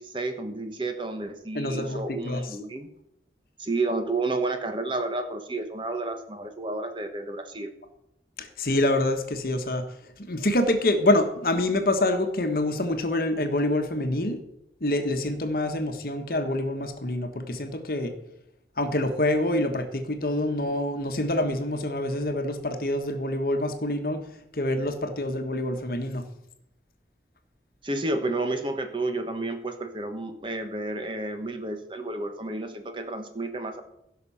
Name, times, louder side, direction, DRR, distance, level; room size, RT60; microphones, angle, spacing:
voice 1, 0.0-2.9 3.6-7.7 27.8-33.8, right 2 dB, 30° right, 7 dB, 1.2 m, -31 dB
voice 2, 1.5-2.4 8.4-9.8 10.3-14.4 14.8-18.1 18.8-24.2 24.5-26.2, left 1 dB, 55° left, 7 dB, 1.3 m, -26 dB
16.0 x 6.0 x 5.6 m, 0.80 s
head